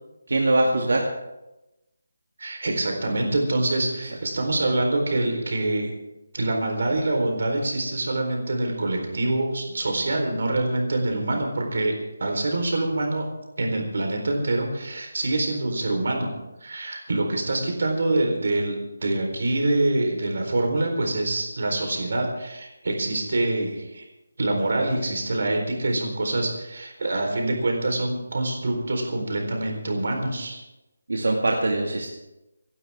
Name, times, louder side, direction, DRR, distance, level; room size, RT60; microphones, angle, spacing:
voice 1, 0.3-1.1 31.1-32.1, right 2 dB, 70° right, -1 dB, 2.3 m, -22 dB
voice 2, 2.4-5.9 6.3-11.9 12.2-13.2 13.6-16.3 16.6-18.7 19.0-24.0 24.4-30.6, right 2 dB, 50° right, 2 dB, 4.2 m, -25 dB
25.5 x 12.0 x 3.7 m, 0.96 s
figure-of-eight pair, 180°, 0 cm